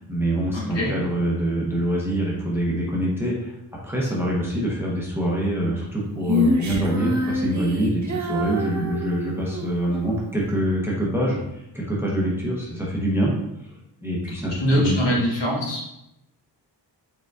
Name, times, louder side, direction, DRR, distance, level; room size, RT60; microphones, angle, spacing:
voice 1, 0.0-3.5 3.8-13.3 14.0-15.2, right 1 dB, 5° right, -4 dB, 0.7 m, -25 dB
voice 2, 0.5-0.9 14.5-15.9, equal, 70° left, -5 dB, 1.5 m, -23 dB
Female singing, 6.2-9.8, left 1 dB, 45° right, 0.5 m, -26 dB
4.9 x 3.7 x 2.3 m, 0.85 s
wide cardioid pair, 170°, 43 cm